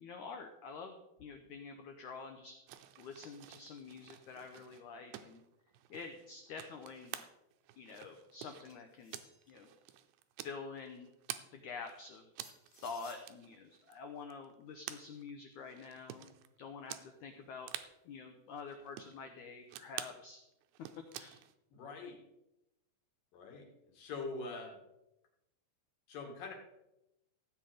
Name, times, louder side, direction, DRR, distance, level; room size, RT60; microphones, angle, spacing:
voice 1, 0.0-2.5 3.0-5.4 5.9-7.2 7.8-9.2 9.5-9.7 10.4-11.1 11.5-12.6 12.8-17.7 18.0-20.4 21.0-21.3, left 5 dB, 90° left, 5 dB, 1.7 m, -48 dB
sound 1, 2.7-11.5 11.8-16.5 16.9-17.1 17.3-17.4 17.6-17.9 18.5-19.2 19.7-20.2 20.6-21.5, right 12 dB, 85° right, 2.8 m, -49 dB
sound 2, 8.7-9.6 12.4-13.2, left 3 dB, 30° left, 3.0 m, -59 dB
voice 2, 21.7-22.2 23.3-24.8 26.1-26.5, left 3 dB, 60° left, 2 dB, 3.4 m, -44 dB
16.0 x 8.7 x 5.0 m, 0.91 s
omnidirectional pair, 4.9 m